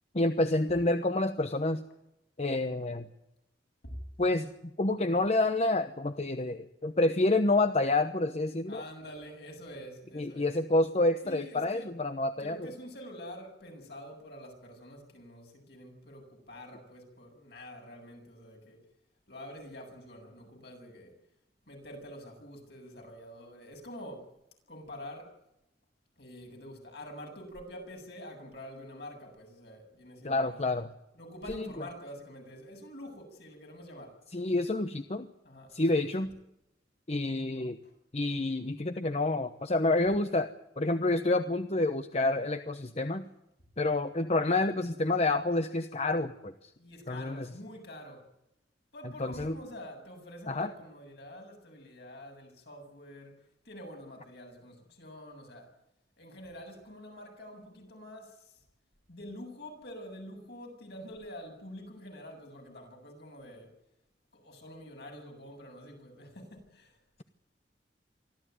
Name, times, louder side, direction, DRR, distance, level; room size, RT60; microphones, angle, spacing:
voice 1, 0.1-1.8 2.4-3.1 4.2-4.5 4.8-8.8 10.1-12.7 30.2-30.9 31.5-31.7 34.3-35.3 35.7-36.3 37.1-37.8 38.1-43.2 43.8-46.5 47.1-47.5 49.2-49.6 50.5-50.7, left 2 dB, 35° left, 1.0 m, -28 dB
voice 2, 8.7-10.6 11.2-11.9 12.4-18.8 19.3-21.1 21.7-24.3 24.7-25.3 26.2-30.7 31.1-34.2 35.4-36.1 37.8-37.9 44.5-44.7 46.8-48.3 48.9-53.4 53.6-55.7 56.2-58.5 59.1-63.7 64.3-67.0, equal, 65° left, 7.9 m, -47 dB
25.0 x 14.5 x 9.3 m
head